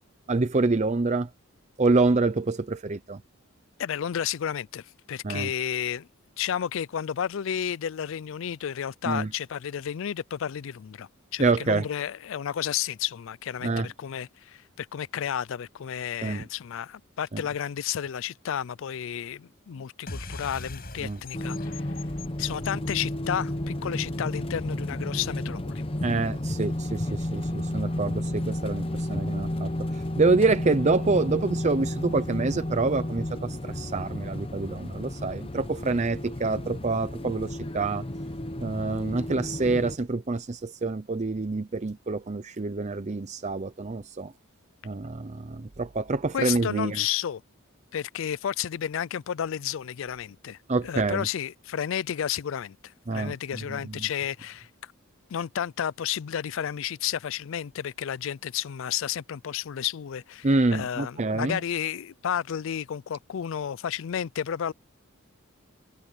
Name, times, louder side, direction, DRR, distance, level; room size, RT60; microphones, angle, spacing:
voice 1, 0.3-1.3 1.8-3.2 5.2-5.5 9.1-9.3 11.4-11.8 13.6-13.9 16.2-16.4 17.3-17.4 21.0-21.2 26.0-38.0 38.6-44.3 44.8-47.0 50.7-51.3 53.1-54.0 60.4-61.6, right 3 dB, 35° right, 0.6 m, -27 dB
voice 2, 3.8-6.1 6.4-21.9 22.4-25.8 46.3-47.4 47.9-54.7 55.3-64.7, left 9 dB, 65° left, 0.4 m, -32 dB
sound 1, 20.1-25.0, left 2 dB, 45° left, 6.4 m, -42 dB
sound 2, 21.3-40.0, left 1 dB, 25° left, 0.9 m, -32 dB
head